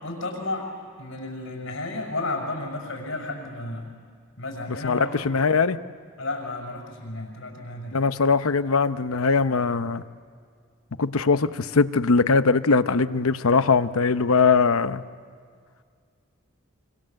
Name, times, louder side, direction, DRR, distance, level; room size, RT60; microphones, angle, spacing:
voice 1, 0.0-3.9 4.4-5.1 6.2-8.0, left 2 dB, 70° left, 1 dB, 6.5 m, -32 dB
voice 2, 4.8-5.8 7.9-10.0 11.0-15.0, left 4 dB, 85° left, 12 dB, 0.8 m, -21 dB
26.5 x 26.5 x 7.6 m, 2.1 s
head